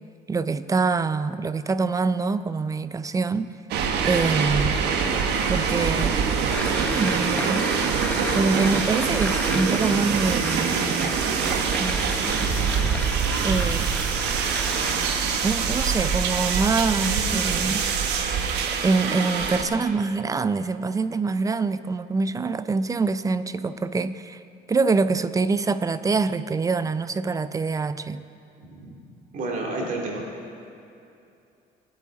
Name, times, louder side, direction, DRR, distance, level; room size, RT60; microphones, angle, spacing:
voice 1, 0.3-3.5 4.0-4.8 5.5-6.2 6.7-7.7 8.3-10.9 11.8-12.7 13.4-13.9 15.4-17.8 18.8-24.4 24.7-28.2, right 4 dB, 20° right, 13 dB, 0.4 m, -25 dB
sound 1, 3.7-19.6, right 6 dB, 80° right, 1.2 m, -24 dB
sound 2, 6.5-17.4, left 1 dB, 10° left, 1.1 m, -34 dB
sound 3, 6.8-7.9 8.2-8.7 9.1-9.5 9.9-10.5 11.0-11.8 12.2-13.9 14.4-14.6 15.1-15.6 16.2-16.6 17.0-18.5 19.0-19.6, left 2 dB, 80° left, 2.7 m, -40 dB
voice 2, 29.3-30.2, right 2 dB, 50° right, -2 dB, 2.4 m, -30 dB
22.5 x 8.2 x 3.8 m, 2.7 s
cardioid pair, 110°, 17 cm